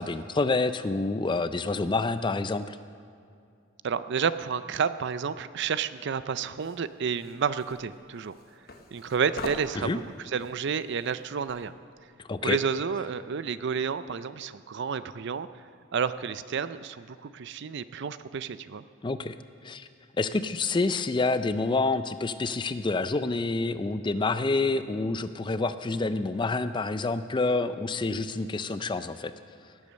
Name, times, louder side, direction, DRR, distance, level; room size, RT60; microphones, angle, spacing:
voice 1, 0.0-2.8 9.8-10.0 12.3-12.6 19.0-19.3 19.6-19.9 20.2-29.3, left 3 dB, 25° left, 12 dB, 0.4 m, -28 dB
voice 2, 3.8-8.3 8.9-11.7 12.4-15.6 15.9-18.8, right 6 dB, 60° right, 14 dB, 0.4 m, -30 dB
sound 1, 6.6-11.7, left 3 dB, 50° left, 1.1 m, -44 dB
17.5 x 8.4 x 6.4 m, 2.4 s
head